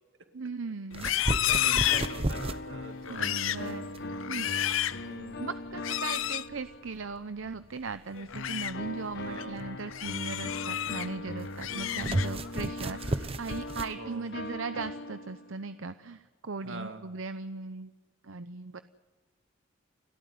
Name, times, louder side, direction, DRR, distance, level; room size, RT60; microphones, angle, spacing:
voice 1, 0.3-1.1 3.1-3.9 4.3-4.5 5.4-17.9 18.2-18.8, right 4 dB, 80° right, 11 dB, 0.8 m, -38 dB
Livestock farm animals working animals, 0.9-2.6 3.0-3.7 4.1-5.0 5.8-6.5 8.2-8.7 9.2-9.4 9.9-11.1 11.5-12.5 12.9-13.2 13.6-14.1, left 12 dB, 85° left, 0.6 m, -31 dB
sound 1, 0.9-14.0, right 1 dB, 30° right, 0.9 m, -36 dB
voice 2, 1.3-3.6 5.0-5.4 9.2-9.7 14.0-14.3 16.6-17.0, right 3 dB, 65° right, 6 dB, 2.3 m, -44 dB
sound 2, 1.5-7.3 8.3-15.7, left 2 dB, 55° left, 1.0 m, -40 dB
30.0 x 13.5 x 9.5 m, 1.4 s
head